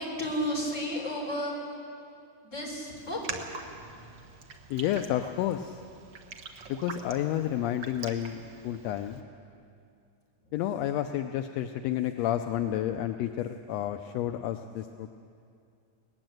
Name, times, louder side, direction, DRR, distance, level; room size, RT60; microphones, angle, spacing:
voice 1, 0.0-1.6 2.4-4.2, equal, 25° left, -1 dB, 4.2 m, -33 dB
Raindrop, 3.0-9.2, right 4 dB, 50° right, 1.6 m, -44 dB
voice 2, 4.7-5.8 6.7-9.2 10.5-15.1, left 11 dB, 75° left, 7 dB, 1.6 m, -30 dB
19.5 x 19.0 x 7.8 m, 2.4 s
omnidirectional pair, 3.5 m